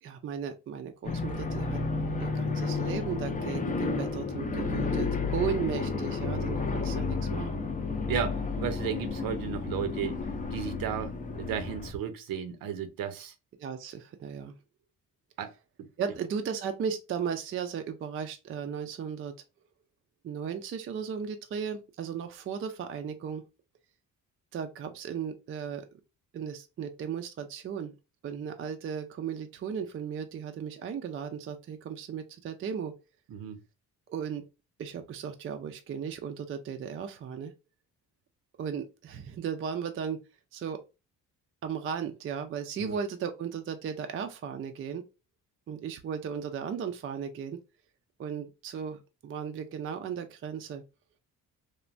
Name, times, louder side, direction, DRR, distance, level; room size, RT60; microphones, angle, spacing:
voice 1, 0.0-1.8 2.2-7.6 13.6-14.6 16.0-19.4 20.2-23.4 24.5-26.0 26.3-27.9 28.2-32.9 34.1-34.4 34.8-37.5 38.6-40.2 40.5-40.8 41.6-45.0 45.7-47.6 48.2-50.8, right 7 dB, 40° right, 0.4 m, -36 dB
sound 1, 1.0-11.9, left 4 dB, 25° left, 0.5 m, -32 dB
voice 2, 8.1-10.2 10.5-13.3 15.4-15.5 15.8-15.9 33.3-33.6 42.8-43.0, right 8 dB, 80° right, 0.7 m, -34 dB
3.2 x 2.1 x 2.5 m
cardioid pair, 105°, 34 cm